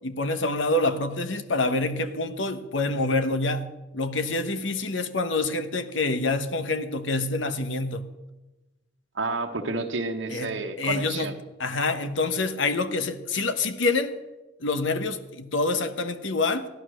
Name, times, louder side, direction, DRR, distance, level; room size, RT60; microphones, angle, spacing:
voice 1, 0.0-3.7 3.9-8.0 10.3-10.5 10.8-11.3 11.6-14.2 14.6-16.7, left 2 dB, 85° left, 1.2 m, -26 dB
voice 2, 9.1-11.3, right 3 dB, 85° right, 1.2 m, -30 dB
15.5 x 11.5 x 6.3 m
head